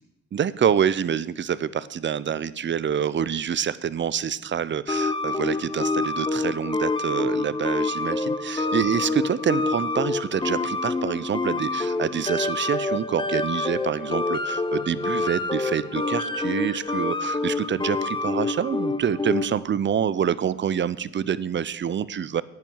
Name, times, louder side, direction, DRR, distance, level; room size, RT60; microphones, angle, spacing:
voice 1, 0.3-22.4, right 8 dB, 40° right, 18 dB, 0.6 m, -26 dB
sound 1, 4.9-19.6, left 3 dB, 15° left, 0.9 m, -27 dB
10.5 x 9.1 x 7.1 m, 0.86 s
cardioid pair, 90°, 30 cm